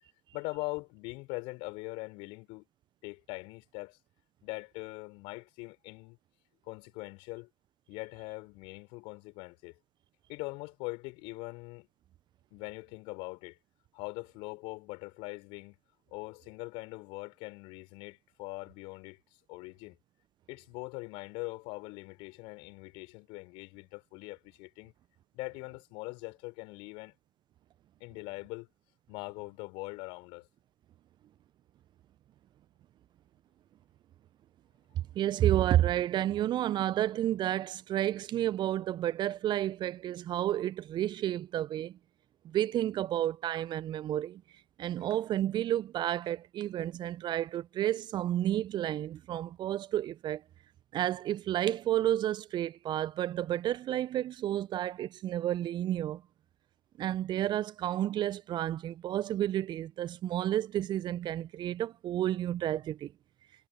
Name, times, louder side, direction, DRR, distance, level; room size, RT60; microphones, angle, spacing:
voice 1, 0.3-2.7 3.0-4.0 4.4-6.2 6.7-7.5 7.9-9.7 10.3-11.9 12.5-13.6 13.9-15.8 16.1-19.2 19.5-20.0 20.5-24.9 25.3-27.1 28.0-28.7 29.1-30.5, left 26 dB, 65° left, 6.0 m, -42 dB
voice 2, 35.0-42.0 42.4-44.4 44.8-50.4 50.9-56.2 57.0-63.1, right 12 dB, 50° right, 1.3 m, -31 dB
figure-of-eight pair, 55°, 10 cm